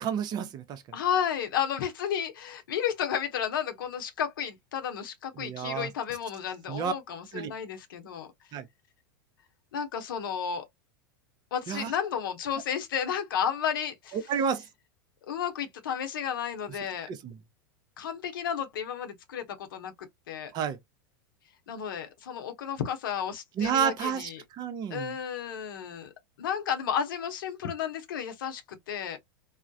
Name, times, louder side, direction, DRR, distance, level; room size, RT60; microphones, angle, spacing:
voice 1, 0.0-0.8 5.4-5.9 6.7-6.9 7.3-7.5 8.5-8.6 11.7-11.9 14.1-14.6 17.1-17.3 20.5-20.8 23.6-25.1, right 7 dB, 40° right, 0.6 m, -30 dB
voice 2, 0.9-8.3 9.7-10.6 11.5-14.2 15.3-17.1 18.0-19.9 20.3-20.5 21.7-24.4 24.9-26.1 26.4-29.2, left 8 dB, 75° left, 0.7 m, -32 dB
2.3 x 2.1 x 2.6 m
hypercardioid pair, 100°, 11 cm